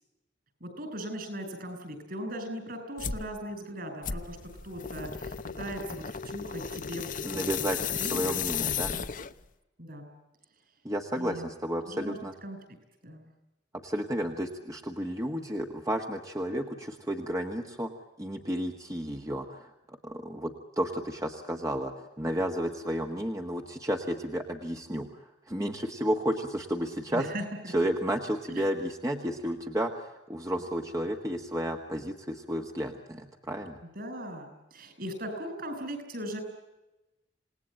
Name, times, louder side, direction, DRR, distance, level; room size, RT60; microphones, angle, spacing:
voice 1, 0.6-4.4 4.6-7.4 8.0-9.0 9.8-10.1 11.1-11.5 11.9-12.6 13.0-13.3 27.1-27.4 28.5-28.6 34.0-36.4, equal, 55° right, 7 dB, 7.0 m, -39 dB
sound 1, 3.0-3.3 4.0-9.5, left 7 dB, 45° left, 0.9 m, -34 dB
voice 2, 7.2-8.9 10.8-12.3 13.8-17.9 18.2-27.3 27.7-33.8, equal, 20° right, 3 dB, 1.5 m, -32 dB
28.0 x 19.0 x 8.9 m, 1.0 s
head